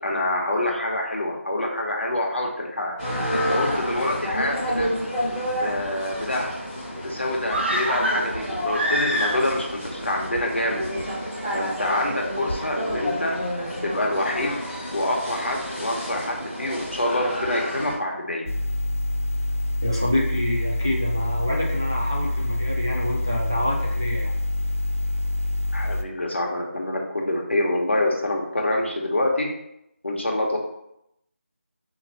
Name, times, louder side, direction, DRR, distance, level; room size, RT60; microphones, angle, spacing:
voice 1, 0.0-2.9 3.3-4.9 5.6-6.5 7.0-10.8 11.5-13.3 13.8-14.5 14.9-18.5 25.7-29.5 30.0-30.6, left 1 dB, 55° left, 0 dB, 1.0 m, -26 dB
sound 1, 3.0-17.9, equal, ahead, 1.1 m, -30 dB
sound 2, 7.5-9.7 10.0-10.1, equal, 50° right, 0.9 m, -25 dB
sound 3, 18.5-26.0, left 1 dB, 85° left, 0.5 m, -26 dB
voice 2, 19.8-24.3, left 1 dB, 20° right, -4 dB, 0.4 m, -27 dB
4.3 x 2.8 x 4.0 m, 0.80 s
figure-of-eight pair, 180°, 7 cm